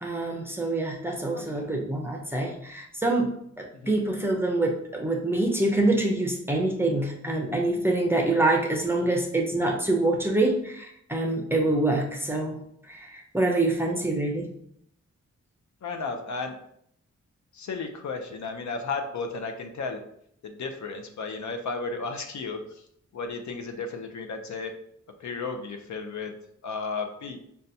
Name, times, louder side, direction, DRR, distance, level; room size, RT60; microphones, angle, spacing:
voice 1, 0.0-3.3 3.6-12.6 12.9-14.5, right 2 dB, 10° right, -1 dB, 0.5 m, -26 dB
voice 2, 1.3-1.7 3.8-3.9 9.0-9.1 11.5-11.7 15.8-16.5 17.5-20.0 20.4-22.6 23.1-24.7 25.2-26.3 26.6-27.4, left 4 dB, 75° left, 6 dB, 0.5 m, -34 dB
5.4 x 2.2 x 2.6 m, 0.71 s
wide cardioid pair, 170°, 29 cm